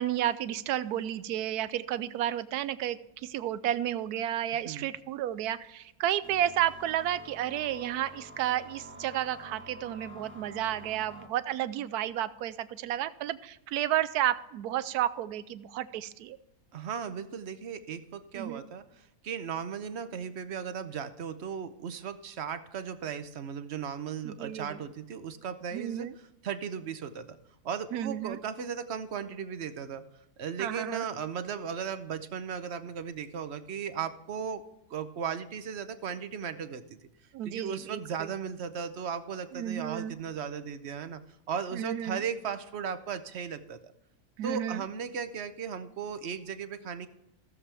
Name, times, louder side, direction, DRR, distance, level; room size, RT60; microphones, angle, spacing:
voice 1, 0.0-16.4 18.3-18.6 24.2-24.8 25.7-26.1 27.9-28.4 30.6-31.1 37.3-38.3 39.5-40.2 41.7-42.2 44.4-44.8, right 12 dB, 80° right, 15 dB, 1.1 m, -32 dB
sound 1, 6.2-11.3, right 1 dB, 10° right, 1.3 m, -48 dB
voice 2, 16.7-26.1 26.4-27.4 27.6-30.0 30.4-34.6 34.9-37.0 37.4-41.2 41.5-43.9 44.4-47.1, right 7 dB, 55° right, 11 dB, 0.8 m, -36 dB
15.5 x 7.2 x 3.4 m, 0.89 s
omnidirectional pair, 1.7 m